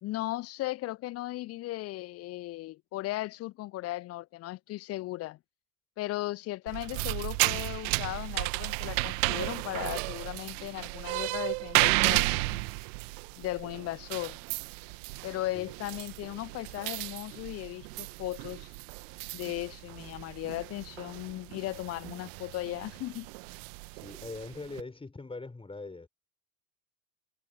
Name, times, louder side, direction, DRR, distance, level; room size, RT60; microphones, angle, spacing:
voice 1, 0.0-5.4 6.0-12.7 13.4-14.4 15.2-18.7 19.3-23.3, left 17 dB, 30° left, 0.7 m, -37 dB
sound 1, 6.7-24.8, right 32 dB, 55° right, 1.9 m, -33 dB
voice 2, 15.4-15.7 23.9-26.1, left 3 dB, 10° left, 6.5 m, -42 dB
figure-of-eight pair, 75°, 46 cm